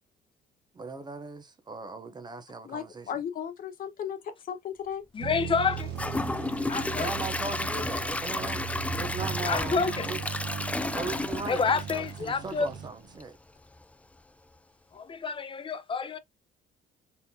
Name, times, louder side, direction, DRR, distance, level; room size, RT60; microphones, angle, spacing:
voice 1, 0.7-3.1 7.0-8.6 8.9-10.2 10.9-11.6 11.9-13.4, right 3 dB, 25° right, 0.7 m, -38 dB
voice 2, 2.6-4.2 4.5-5.0, left 8 dB, 55° left, 1.2 m, -35 dB
voice 3, 5.1-5.9 6.7-7.1 9.4-10.1 11.5-12.7 14.9-16.2, left 5 dB, 30° left, 0.8 m, -28 dB
sound 1, 5.2-13.2, right 8 dB, 80° right, 0.9 m, -38 dB
Gurgling / Toilet flush / Trickle dribble, 5.7-12.8 13.2-13.3 13.8-13.9, left 2 dB, 10° left, 0.4 m, -32 dB
4.1 x 3.7 x 2.7 m
cardioid pair, 110°, 17 cm